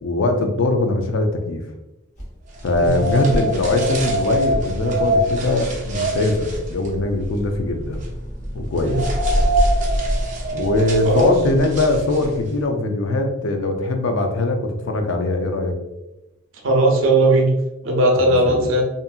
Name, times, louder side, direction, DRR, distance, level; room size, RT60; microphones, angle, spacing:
voice 1, 0.0-1.6 2.6-8.0 8.5-9.0 10.5-15.8 18.2-18.7, left 2 dB, 85° left, 4 dB, 0.4 m, -21 dB
sound 1, 2.1-2.5 2.8-3.5 3.9-4.1 4.5-4.7 5.9-6.0 6.5-6.9 7.4-7.5 7.7-8.1 8.8-9.0 9.3-9.7 10.1-10.3 10.9-11.2, equal, 40° left, 0.8 m, -31 dB
sound 2, 2.6-12.5, right 1 dB, 40° right, 0.5 m, -24 dB
voice 2, 16.6-17.6 17.8-18.8, right 2 dB, 85° right, 0 dB, 0.5 m, -17 dB
2.7 x 2.5 x 2.3 m, 0.99 s
head